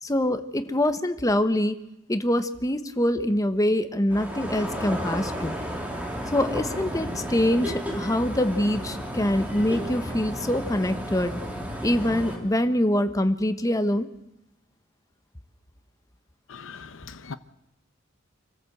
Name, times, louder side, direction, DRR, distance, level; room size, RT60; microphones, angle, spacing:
voice 1, 0.0-1.8 2.1-5.5 6.3-11.3 11.8-14.1, left 1 dB, 15° left, 1.1 m, -24 dB
sound 1, 4.1-12.4, equal, 10° right, 3.1 m, -33 dB
voice 2, 16.5-17.3, left 5 dB, 80° left, 0.8 m, -40 dB
25.5 x 14.0 x 7.9 m
head